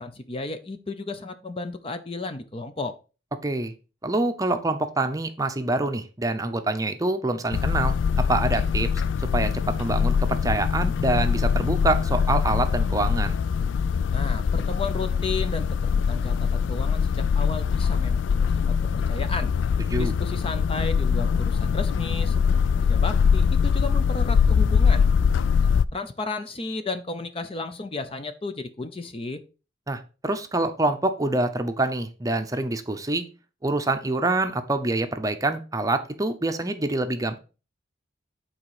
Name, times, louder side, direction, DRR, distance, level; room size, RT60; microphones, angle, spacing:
voice 1, 0.0-3.0 14.1-18.3 18.7-19.5 20.0-22.4 22.8-25.0 25.6-29.4, left 3 dB, 30° left, 10 dB, 0.6 m, -33 dB
voice 2, 4.0-8.0 8.3-8.9 9.3-13.4 19.9-20.1 29.9-33.2 33.6-37.4, right 2 dB, 20° right, 7 dB, 0.7 m, -26 dB
sound 1, 7.5-25.9, left 6 dB, 75° left, 0.3 m, -23 dB
8.6 x 4.2 x 4.8 m, 0.33 s
head